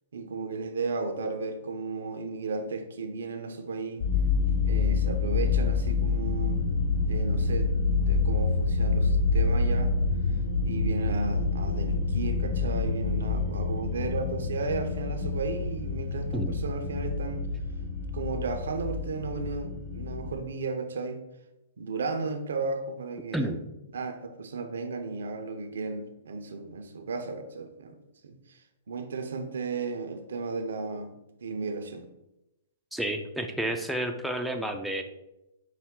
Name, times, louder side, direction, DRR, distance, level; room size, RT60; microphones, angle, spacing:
voice 1, 0.1-4.0 4.6-6.7 7.1-10.0 10.6-17.5 18.1-21.2 21.8-23.5 23.9-28.0 28.2-28.6 28.9-31.1 31.4-32.0, right 4 dB, 75° right, 7 dB, 0.5 m, -34 dB
sound 1, 4.0-20.3, left 4 dB, 60° left, 1.4 m, -27 dB
voice 2, 32.9-35.0, right 1 dB, ahead, 3 dB, 0.4 m, -30 dB
5.5 x 2.1 x 3.6 m, 0.90 s
hypercardioid pair, 120°, 0 cm